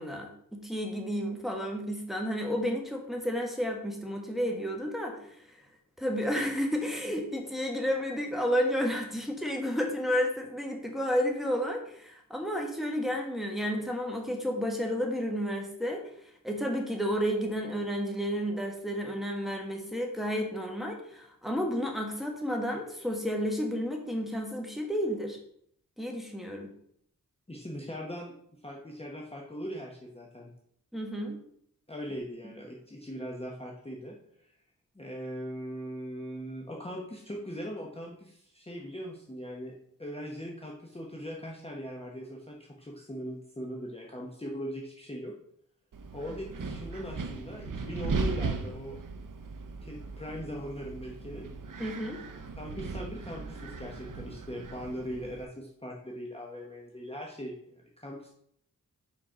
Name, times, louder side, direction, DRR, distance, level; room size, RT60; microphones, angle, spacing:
voice 1, 0.0-5.5 6.0-16.0 16.4-25.4 26.0-26.7 30.9-31.4 51.8-52.2, equal, ahead, 1 dB, 1.4 m, -31 dB
voice 2, 27.5-28.3 28.6-30.5 31.9-34.6 34.9-39.7 40.0-45.3 46.1-49.0 49.8-51.5 52.6-58.3, equal, 15° left, -1 dB, 1.0 m, -40 dB
Wind, 45.9-55.4, right 4 dB, 65° right, 0.7 m, -37 dB
5.2 x 5.2 x 5.1 m, 0.68 s
wide cardioid pair, 75°, 35 cm